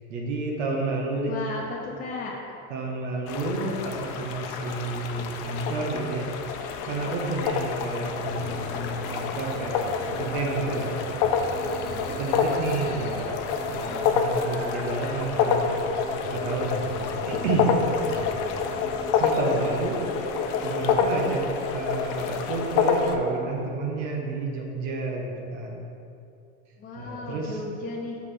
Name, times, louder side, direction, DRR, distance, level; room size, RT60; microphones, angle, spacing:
voice 1, 0.1-1.3 2.7-6.6 6.9-11.0 11.8-13.4 13.7-15.8 16.3-17.7 18.1-18.3 19.2-20.0 20.6-21.4 21.7-25.8 26.9-27.6, right 3 dB, 80° right, -1 dB, 1.2 m, -30 dB
voice 2, 1.2-2.3 26.8-28.2, left 3 dB, 25° left, -4 dB, 1.0 m, -35 dB
sound 1, 3.3-23.1, left 6 dB, 60° left, 0.7 m, -28 dB
sound 2, 8.2-23.7, right 4 dB, 35° right, 0.6 m, -41 dB
6.5 x 5.4 x 3.3 m, 2.6 s
supercardioid pair, 120°, 35 cm